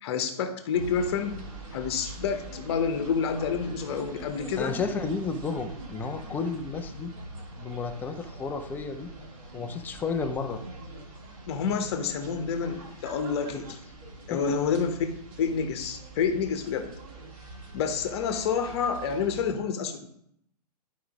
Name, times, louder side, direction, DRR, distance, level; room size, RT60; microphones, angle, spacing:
voice 1, 0.0-1.4 1.7-4.8 11.5-13.6 14.3-15.0 15.4-16.9 17.7-20.1, left 6 dB, 40° left, 7 dB, 1.0 m, -28 dB
sound 1, 0.7-19.5, right 2 dB, 55° right, 2.0 m, -43 dB
voice 2, 4.6-7.1 7.6-9.1 9.5-10.6 13.5-13.6 14.3-14.5, left 4 dB, 10° left, 7 dB, 0.4 m, -32 dB
11.0 x 4.8 x 3.6 m, 0.73 s
figure-of-eight pair, 120°, 20 cm